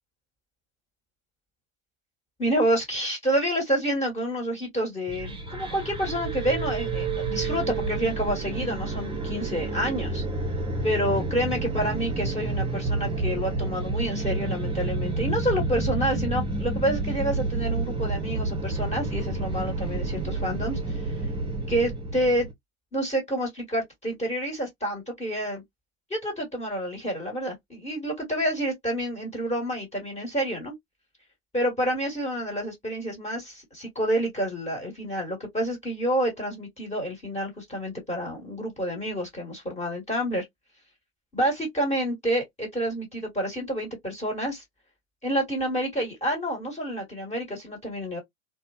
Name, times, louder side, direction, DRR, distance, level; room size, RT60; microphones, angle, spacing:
voice 1, 2.4-10.2 10.8-21.0 21.7-22.5 22.9-25.6 26.1-30.7 31.5-40.4 41.3-44.6 45.2-48.2, equal, 15° left, 1.5 m, -28 dB
sound 1, 5.1-22.5, right 3 dB, 15° right, 0.7 m, -29 dB
2.6 x 2.3 x 2.2 m
hypercardioid pair, 95°, 41 cm